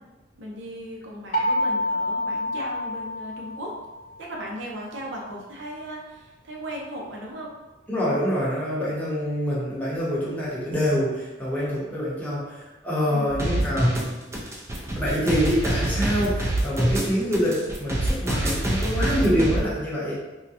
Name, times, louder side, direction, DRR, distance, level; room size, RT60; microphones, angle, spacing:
voice 1, 0.4-3.7 4.2-7.5 13.1-13.4, equal, 70° right, -2 dB, 0.6 m, -37 dB
sound 1, 1.3-4.1, left 1 dB, 50° left, 0.4 m, -27 dB
voice 2, 7.9-14.1 14.9-20.2, equal, 10° left, -7 dB, 0.8 m, -26 dB
sound 2, 13.3-19.6, right 1 dB, 15° right, 0.4 m, -25 dB
3.6 x 2.1 x 2.8 m, 1.1 s
head